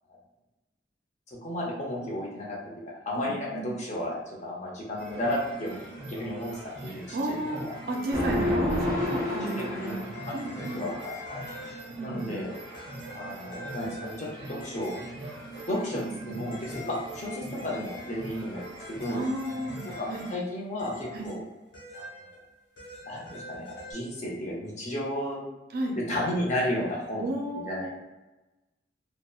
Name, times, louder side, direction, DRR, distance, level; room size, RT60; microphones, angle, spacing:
voice 1, 1.4-2.6 3.1-5.8 6.1-7.7 9.4-11.4 12.0-12.5 13.1-14.9 15.7-19.2 19.8-21.4 21.9-22.1 23.1-25.4 26.0-27.2 27.6-27.9, left 1 dB, 40° left, -3 dB, 0.6 m, -33 dB
voice 2, 3.1-3.7 7.1-10.8 12.0-12.4 15.9-16.4 19.1-20.3 21.1-21.3 25.7-26.0 27.2-27.9, right 1 dB, 55° right, 1 dB, 0.4 m, -33 dB
sound 1, 5.0-20.4, right 2 dB, 85° right, 0.7 m, -43 dB
sound 2, 8.1-10.5, left 1 dB, 5° left, 0.7 m, -29 dB
sound 3, 9.7-12.2 12.7-15.3 16.5-20.5 20.8-23.9, left 2 dB, 90° left, 1.2 m, -46 dB
2.7 x 2.2 x 2.3 m, 1.1 s
head